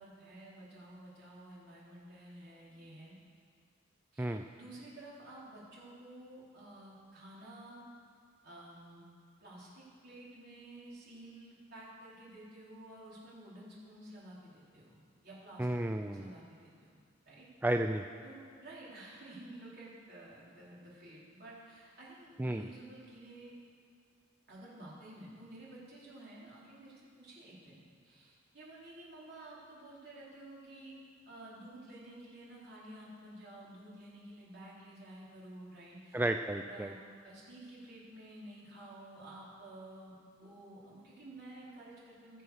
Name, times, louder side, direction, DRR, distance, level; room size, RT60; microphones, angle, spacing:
voice 1, 0.0-3.2 4.1-7.8 8.4-9.0 9.4-15.7 16.0-17.0 17.3-17.5 18.2-23.5 24.5-31.0 31.2-36.2 36.5-37.0 37.2-42.4, right 1 dB, 55° right, -7 dB, 4.2 m, -52 dB
voice 2, 15.6-16.3 17.6-18.0 22.4-22.7 36.1-36.9, right 1 dB, 10° right, 5 dB, 0.3 m, -32 dB
20.5 x 6.9 x 6.4 m, 2.1 s
head